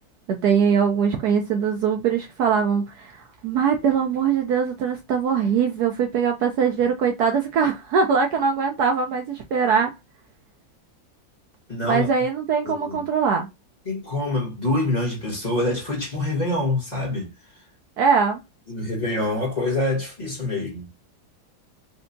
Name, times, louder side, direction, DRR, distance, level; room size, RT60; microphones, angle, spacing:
voice 1, 0.3-9.9 11.8-13.5 18.0-18.4, right 6 dB, 65° right, 1.1 m, -22 dB
voice 2, 11.7-12.1 12.6-13.1 13.8-17.3 18.7-20.9, left 2 dB, 25° left, 1.7 m, -26 dB
4.3 x 2.8 x 2.6 m
omnidirectional pair, 2.0 m